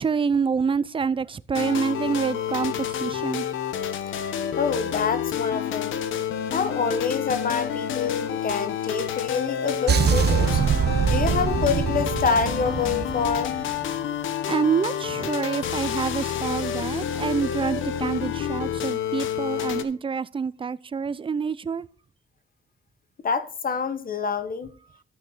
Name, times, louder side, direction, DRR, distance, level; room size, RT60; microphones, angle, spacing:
voice 1, 0.0-3.5 14.5-21.9, right 5 dB, 25° right, 0.4 m, -27 dB
sound 1, 1.5-19.8, left 9 dB, 75° left, 0.9 m, -29 dB
voice 2, 4.1-6.0 6.5-10.6 11.1-13.5 23.2-24.7, left 5 dB, 45° left, 1.0 m, -27 dB
sound 2, 9.9-14.0, right 7 dB, 55° right, 1.2 m, -23 dB
12.0 x 6.1 x 3.9 m
cardioid pair, 75°, 20 cm